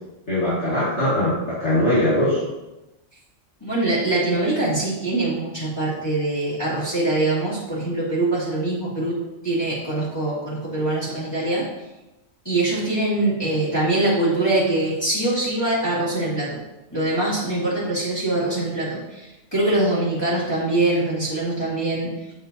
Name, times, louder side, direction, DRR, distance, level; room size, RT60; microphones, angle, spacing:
voice 1, 0.3-2.4, left 1 dB, 65° left, -11 dB, 2.5 m, -21 dB
voice 2, 3.6-9.2 9.4-11.6 12.4-16.6 16.9-22.1, right 2 dB, 20° left, -9 dB, 2.6 m, -23 dB
8.2 x 7.2 x 2.7 m, 1.0 s
omnidirectional pair, 1.2 m